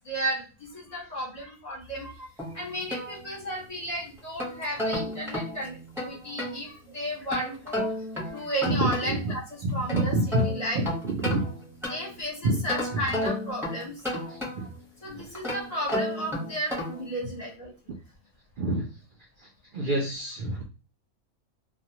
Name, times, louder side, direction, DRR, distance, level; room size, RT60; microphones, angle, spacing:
voice 1, 0.0-2.3 2.5-7.9 8.3-10.1 10.4-10.8 11.9-13.9 15.0-17.7, equal, 35° left, -3 dB, 0.7 m, -33 dB
sound 1, 2.4-3.7 4.2-6.6 7.3-9.3 9.7-12.2 12.7-14.8 15.3-17.1, left 1 dB, ahead, 0.7 m, -33 dB
voice 2, 8.7-9.2 9.6-10.4 10.8-11.4 12.4-12.6 14.6-14.7 18.6-18.8 19.7-20.6, right 2 dB, 85° right, -1 dB, 0.4 m, -27 dB
2.3 x 2.2 x 2.8 m, 0.33 s
omnidirectional pair, 1.5 m